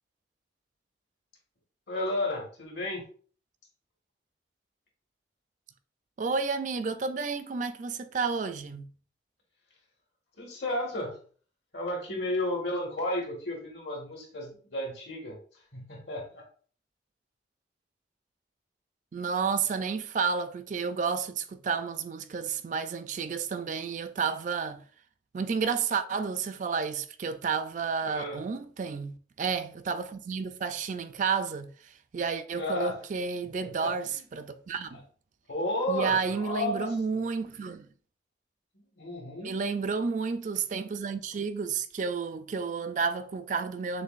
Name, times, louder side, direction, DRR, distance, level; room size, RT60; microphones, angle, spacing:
voice 1, 1.9-3.0 10.4-11.1 11.7-15.4 15.7-16.4 28.0-28.4 32.5-32.9 33.6-33.9 35.5-36.9 39.0-39.5, left 1 dB, 75° left, 1.6 m, -32 dB
voice 2, 6.2-8.9 19.1-24.8 25.3-35.0 35.9-37.9 39.4-44.0, right 5 dB, 45° right, 0.3 m, -31 dB
6.4 x 2.6 x 2.4 m
head